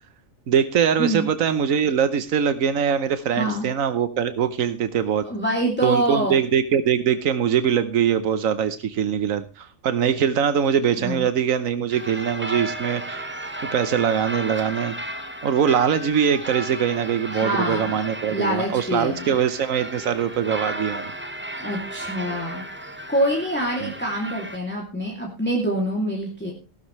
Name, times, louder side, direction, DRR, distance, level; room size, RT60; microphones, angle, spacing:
voice 1, 0.5-5.3 5.8-13.3 13.7-14.9 15.4-21.1 23.8-23.9, right 8 dB, 90° right, 11 dB, 1.3 m, -22 dB
voice 2, 3.3-3.7 5.2-6.4 11.0-11.3 17.3-18.0 18.3-19.4 21.6-22.7 23.1-26.5, right 1 dB, 10° left, -2 dB, 2.6 m, -25 dB
sound 1, 11.9-24.6, right 1 dB, 10° right, 1.1 m, -34 dB
15.5 x 13.0 x 3.2 m, 0.31 s
omnidirectional pair, 1.4 m